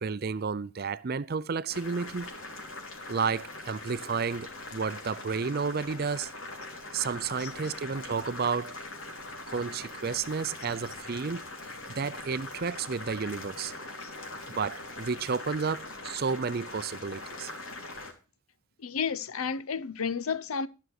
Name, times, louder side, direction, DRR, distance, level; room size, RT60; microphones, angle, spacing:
voice 1, 0.0-2.3 3.1-6.3 6.9-8.8 9.5-11.4 11.9-13.7 14.5-17.5, right 5 dB, 45° right, 0.5 m, -31 dB
Boiling, 1.7-18.1, left 2 dB, 75° left, 3.3 m, -42 dB
voice 2, 7.4-7.7 10.7-10.8 14.0-14.2 18.8-20.7, left 6 dB, 90° left, 0.7 m, -32 dB
13.5 x 6.3 x 6.4 m
head